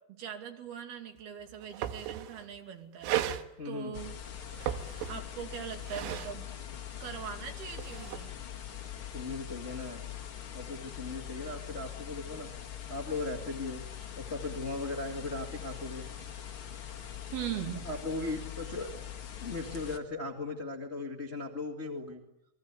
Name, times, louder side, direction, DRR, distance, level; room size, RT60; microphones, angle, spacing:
voice 1, 0.1-3.2 3.7-4.2 5.1-6.5 7.0-8.3 17.3-17.8, right 9 dB, 55° right, 5 dB, 4.1 m, -40 dB
sound 1, 1.2-1.3 1.5-2.5 3.0-3.4 4.4-5.4 5.7-6.3 7.5-8.2, right 12 dB, 80° right, 3.7 m, -35 dB
voice 2, 3.6-4.0 9.1-10.0 10.5-12.5 12.9-13.8 14.1-16.1 17.8-18.9 19.4-22.2, left 3 dB, 55° left, 3 dB, 0.7 m, -37 dB
sound 2, 3.9-20.0, left 9 dB, 75° left, 1.2 m, -43 dB
29.0 x 23.0 x 8.4 m, 0.87 s
omnidirectional pair, 5.7 m